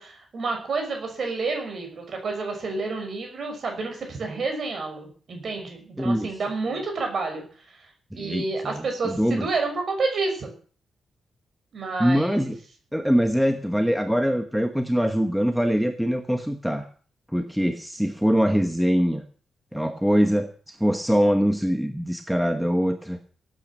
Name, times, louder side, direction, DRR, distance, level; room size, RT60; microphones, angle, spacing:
voice 1, 0.0-7.9 8.2-10.5 11.7-12.5, right 3 dB, 40° right, 3 dB, 6.0 m, -29 dB
voice 2, 6.0-6.3 8.1-9.5 12.0-12.6 12.9-16.8 17.3-19.2 19.7-23.2, equal, ahead, 6 dB, 1.1 m, -23 dB
17.5 x 9.2 x 7.4 m, 0.43 s
wide cardioid pair, 175°, 0 cm